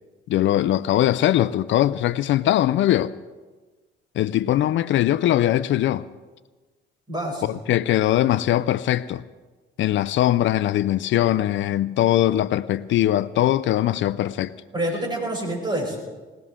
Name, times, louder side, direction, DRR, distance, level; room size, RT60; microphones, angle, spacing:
voice 1, 0.3-3.1 4.2-6.1 7.4-9.2 9.8-14.5, left 13 dB, 75° left, 0.5 m, -21 dB
voice 2, 7.1-7.6 14.7-16.0, right 1 dB, 20° right, 7.0 m, -27 dB
21.5 x 18.0 x 3.7 m
cardioid pair, 90°, 20 cm